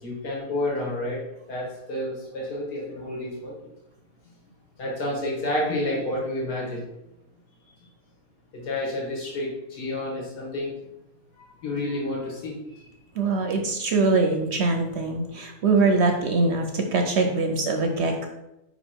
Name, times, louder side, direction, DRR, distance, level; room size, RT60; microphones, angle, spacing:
voice 1, 0.0-1.2 1.5-3.6 4.8-6.8 8.5-10.7 11.4-12.5, left 1 dB, 75° left, -3 dB, 2.2 m, -30 dB
voice 2, 13.1-18.3, right 3 dB, 60° right, 4 dB, 0.7 m, -23 dB
5.4 x 4.2 x 4.4 m, 0.91 s
omnidirectional pair, 1.7 m